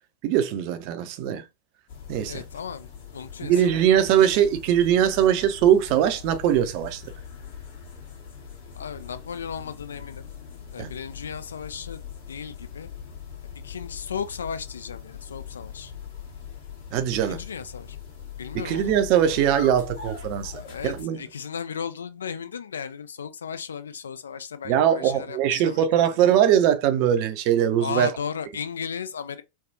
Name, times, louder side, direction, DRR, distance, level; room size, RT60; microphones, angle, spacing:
voice 1, 0.2-1.4 2.1-2.4 3.4-7.0 10.8-10.9 16.9-17.4 18.6-20.5 20.8-21.2 24.7-28.1, right 10 dB, 45° right, 0.5 m, -21 dB
sound 1, 1.9-21.0, left 7 dB, 55° left, 1.3 m, -41 dB
voice 2, 2.3-4.0 8.7-10.2 10.7-12.0 12.3-12.9 13.6-15.9 17.3-18.0 18.4-19.0 20.5-26.2 27.8-29.4, left 7 dB, 70° left, 0.4 m, -35 dB
3.3 x 2.2 x 2.6 m
figure-of-eight pair, 90°, 0 cm